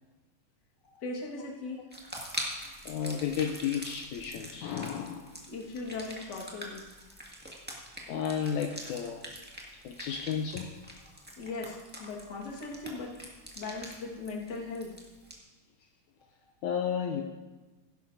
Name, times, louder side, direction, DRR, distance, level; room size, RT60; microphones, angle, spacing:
voice 1, 0.9-1.8 5.5-6.8 11.4-13.2 13.6-14.9, left 3 dB, 40° left, -2 dB, 1.8 m, -38 dB
sound 1, 1.9-15.3, equal, 5° right, 0.8 m, -44 dB
voice 2, 2.9-5.4 8.1-9.2 9.8-10.7 16.6-17.2, left 8 dB, 75° left, 3 dB, 2.0 m, -32 dB
16.0 x 12.0 x 2.7 m, 1.2 s
omnidirectional pair, 3.7 m